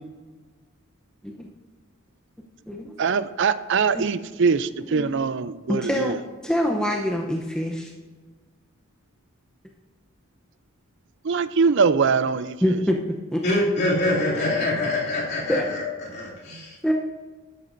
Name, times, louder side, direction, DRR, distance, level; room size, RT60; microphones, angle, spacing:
voice 1, 3.0-6.2 11.2-12.8, right 5 dB, 60° right, 14 dB, 0.5 m, -22 dB
voice 2, 5.7-6.1 6.4-7.9 12.6-13.0 13.3-13.4 15.5-15.7 16.8-16.9, equal, 5° left, -1 dB, 0.7 m, -24 dB
voice 3, 13.4-16.8, left 2 dB, 50° left, -5 dB, 2.7 m, -25 dB
12.5 x 11.0 x 2.6 m, 1.4 s
head